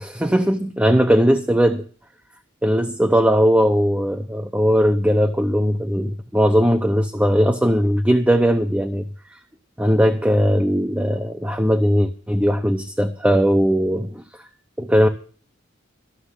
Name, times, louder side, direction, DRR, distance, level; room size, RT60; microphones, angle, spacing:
voice 1, 0.0-1.9 2.6-9.1 9.8-14.2 14.8-15.1, equal, 5° right, 0.7 m, -19 dB
14.0 x 6.5 x 10.0 m
head